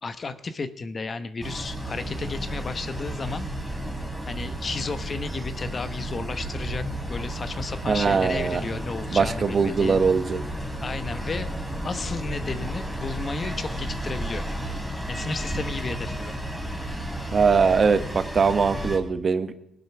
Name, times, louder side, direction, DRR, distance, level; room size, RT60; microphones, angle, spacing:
voice 1, 0.0-3.5 4.3-10.1 10.4-10.5 10.8-11.5 11.8-14.5 15.1-16.4, left 4 dB, 35° left, 11 dB, 1.0 m, -33 dB
sound 1, 1.4-19.0, right 1 dB, ahead, 2.9 m, -32 dB
voice 2, 7.9-8.6 9.1-10.4 17.3-19.6, right 5 dB, 40° right, 10 dB, 1.1 m, -21 dB
18.5 x 7.8 x 6.0 m, 0.91 s
cardioid pair, 90°, 0 cm